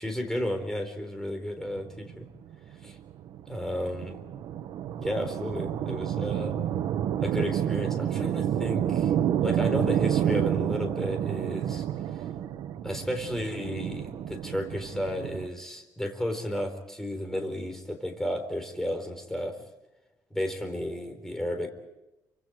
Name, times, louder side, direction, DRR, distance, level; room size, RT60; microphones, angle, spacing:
voice 1, 0.0-2.3 2.8-3.0 3.5-4.2 5.0-6.6 7.2-9.1 9.4-11.9 12.8-19.6 20.3-21.7, left 1 dB, 5° left, 5 dB, 4.1 m, -33 dB
sound 1, 1.7-15.5, right 10 dB, 75° right, 1.2 m, -29 dB
28.5 x 25.5 x 5.0 m, 0.97 s
cardioid pair, 155°, 7 cm